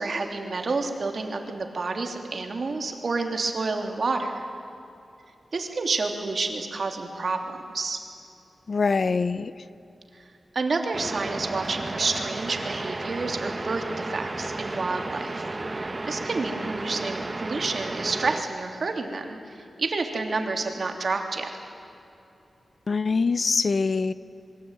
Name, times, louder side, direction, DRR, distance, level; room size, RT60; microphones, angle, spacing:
voice 1, 0.0-4.4 5.5-7.4 7.7-8.0 10.1-10.2 10.5-15.4 15.7-19.4 19.8-21.5, right 3 dB, 55° right, 4 dB, 3.2 m, -29 dB
voice 2, 8.7-9.5 22.9-24.1, left 4 dB, 50° left, 15 dB, 0.8 m, -23 dB
sound 1, 10.9-18.4, right 2 dB, 30° right, 1.1 m, -33 dB
26.5 x 23.0 x 9.1 m, 2.7 s
wide cardioid pair, 100°, 0 cm